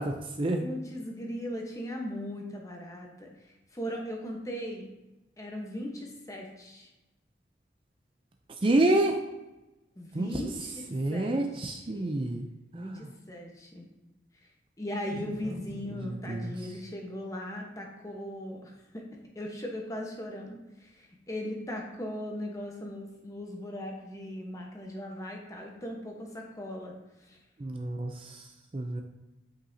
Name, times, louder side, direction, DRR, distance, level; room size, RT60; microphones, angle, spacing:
voice 1, 0.0-0.7 8.6-9.2 10.1-10.4 10.9-12.5 12.7-13.1 15.1-15.3 15.9-16.5 27.6-29.0, right 1 dB, 30° right, 4 dB, 0.4 m, -29 dB
voice 2, 0.6-3.3 3.7-4.9 5.4-6.9 10.0-10.9 11.1-11.4 11.9-12.2 12.7-13.9 14.8-19.0 19.3-26.9 27.3-27.4, left 1 dB, 20° left, 0 dB, 1.0 m, -38 dB
8.7 x 5.5 x 2.7 m, 1.0 s
head